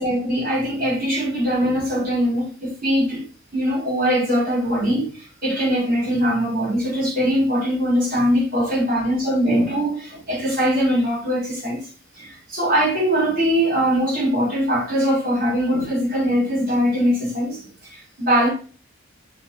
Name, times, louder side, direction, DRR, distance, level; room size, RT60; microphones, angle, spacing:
voice 1, 0.0-3.2 3.5-11.8 12.2-18.5, equal, 45° right, 3.7 m, -21 dB
9.0 x 5.1 x 2.9 m
head